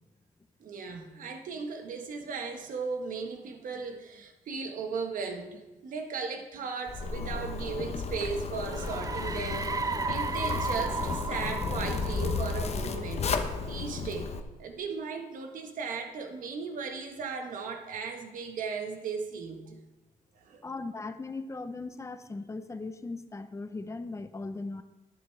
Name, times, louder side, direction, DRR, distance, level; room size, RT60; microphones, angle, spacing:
voice 1, 0.6-13.2 13.7-14.3 14.6-19.8 20.3-20.6, right 5 dB, 70° right, 4 dB, 1.4 m, -37 dB
Zipper (clothing), 6.9-14.4, left 5 dB, 45° left, 0.9 m, -33 dB
sound 1, 8.7-13.3, right 4 dB, 25° right, 0.4 m, -34 dB
voice 2, 20.6-24.8, left 3 dB, 20° left, 10 dB, 0.7 m, -38 dB
11.0 x 10.5 x 3.3 m, 1.1 s
cardioid pair, 85°, 15 cm